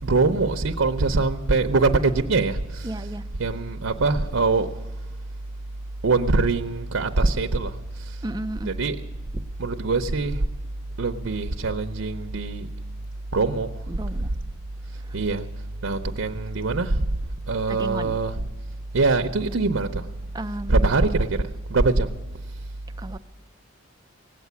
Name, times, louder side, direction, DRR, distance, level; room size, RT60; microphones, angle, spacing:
voice 1, 0.0-3.1 3.4-4.7 6.0-8.2 8.6-9.0 9.6-10.5 11.0-12.7 13.3-13.8 14.2-14.3 15.1-15.5 15.8-17.1 17.5-18.4 18.9-20.1 20.7-22.2 22.5-22.6, right 3 dB, 75° right, 0.7 m, -23 dB
voice 2, 2.8-3.2 8.2-8.7 9.3-9.4 13.9-14.3 17.7-18.2 20.3-20.9 23.0-23.2, right 1 dB, 20° right, 0.4 m, -33 dB
18.5 x 8.3 x 9.4 m
head